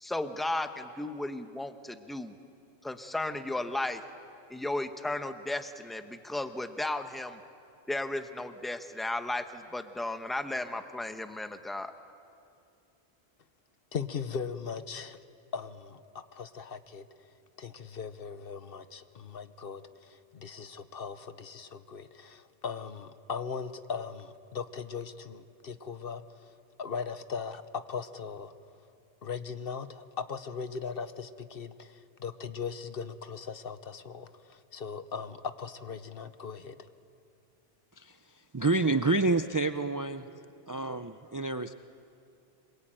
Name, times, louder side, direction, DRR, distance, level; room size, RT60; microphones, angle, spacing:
voice 1, 0.0-2.3 2.8-4.0 4.5-7.4 7.9-11.9, left 2 dB, ahead, 8 dB, 0.9 m, -34 dB
voice 2, 13.9-15.2 15.5-17.1 17.6-27.6 27.9-28.5 29.2-36.8, left 6 dB, 65° left, 12 dB, 1.1 m, -39 dB
voice 3, 38.5-40.3 40.7-41.7, right 3 dB, 25° right, 10 dB, 0.5 m, -28 dB
26.0 x 22.0 x 9.1 m, 2.5 s
omnidirectional pair, 1.1 m